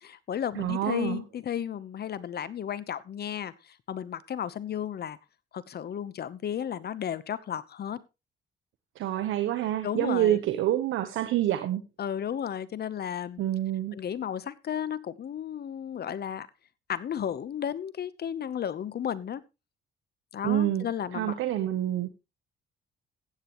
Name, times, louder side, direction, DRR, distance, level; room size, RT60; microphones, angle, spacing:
voice 1, 0.0-5.2 5.5-8.0 9.8-10.4 12.0-13.4 13.9-16.5 16.9-19.4 20.3-21.3, left 9 dB, 55° left, 16 dB, 1.0 m, -33 dB
voice 2, 0.6-1.2 9.0-11.8 13.4-13.9 20.4-20.9 21.1-22.1, right 12 dB, 85° right, 11 dB, 1.1 m, -27 dB
15.0 x 9.2 x 3.1 m, 0.26 s
cardioid pair, 90°, 20 cm